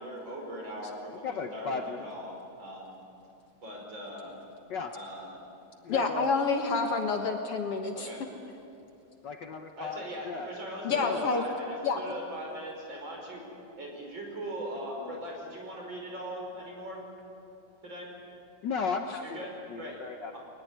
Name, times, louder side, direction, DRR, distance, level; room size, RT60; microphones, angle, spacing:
voice 1, 0.0-2.9 3.6-4.4 4.9-5.4 7.9-8.2 9.8-13.5 13.8-17.0 17.8-18.1 19.2-20.0 20.3-20.4, equal, 40° right, 0 dB, 5.9 m, -40 dB
voice 2, 1.2-2.0 4.7-4.9 5.8-6.3 6.8-7.0 9.2-10.5 11.0-11.2 11.4-11.5 18.6-19.4 19.7-20.3, left 5 dB, 85° left, 4 dB, 0.9 m, -35 dB
voice 3, 5.9-8.1 10.8-11.4 11.8-12.0 19.1-19.2, left 4 dB, 55° left, 4 dB, 2.2 m, -28 dB
22.0 x 20.5 x 9.6 m, 2.7 s
omnidirectional pair, 3.3 m